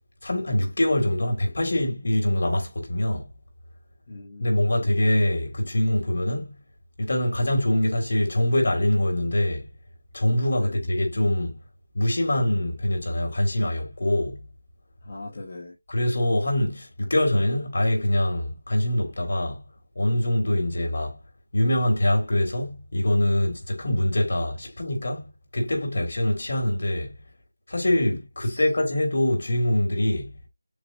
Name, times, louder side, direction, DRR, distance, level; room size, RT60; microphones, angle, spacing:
voice 1, 0.2-3.3 4.4-6.5 7.0-9.7 10.1-11.6 11.9-14.4 15.9-19.6 19.9-21.2 21.5-27.1 27.7-30.3, left 1 dB, 60° left, 2.6 m, -24 dB
voice 2, 4.1-5.0 10.5-10.8 15.0-15.7 28.4-28.6, left 2 dB, 35° left, 1.5 m, -40 dB
6.7 x 2.6 x 2.7 m
figure-of-eight pair, 175°, 0 cm